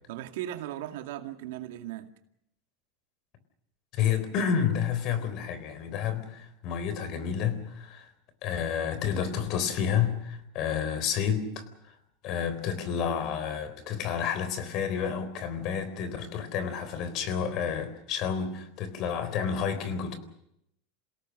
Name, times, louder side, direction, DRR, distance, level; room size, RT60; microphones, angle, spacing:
voice 1, 0.1-2.1, right 13 dB, 75° right, 6 dB, 2.2 m, -37 dB
voice 2, 3.9-8.1 8.4-12.0 12.2-20.2, left 7 dB, 50° left, 12 dB, 3.9 m, -30 dB
28.0 x 17.5 x 6.5 m, 0.77 s
supercardioid pair, 135°, 0 cm